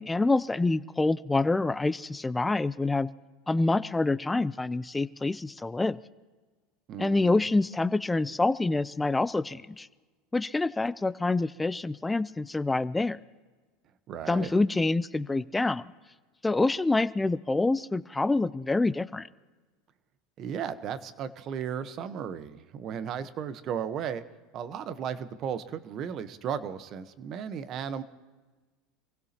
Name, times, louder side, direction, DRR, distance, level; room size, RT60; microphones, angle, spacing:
voice 1, 0.0-3.1 3.5-6.0 7.0-9.9 10.3-13.2 14.3-15.9 16.4-19.3, left 2 dB, 10° left, 16 dB, 0.5 m, -26 dB
voice 2, 6.9-7.4 14.1-14.5 20.4-24.2 24.5-28.0, right 8 dB, 45° right, 12 dB, 1.1 m, -35 dB
26.5 x 16.0 x 2.9 m, 1.3 s
supercardioid pair, 115°, 0 cm